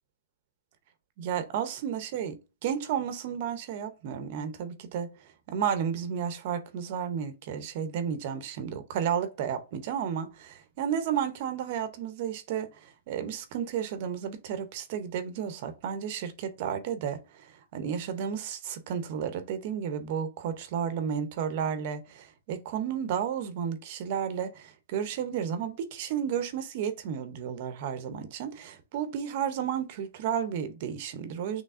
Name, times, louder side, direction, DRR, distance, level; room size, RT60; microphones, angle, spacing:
voice 1, 1.2-2.4 2.6-5.1 5.5-31.6, right 8 dB, 40° right, 0.6 m, -32 dB
6.6 x 3.1 x 2.5 m
hypercardioid pair, 165°, 0 cm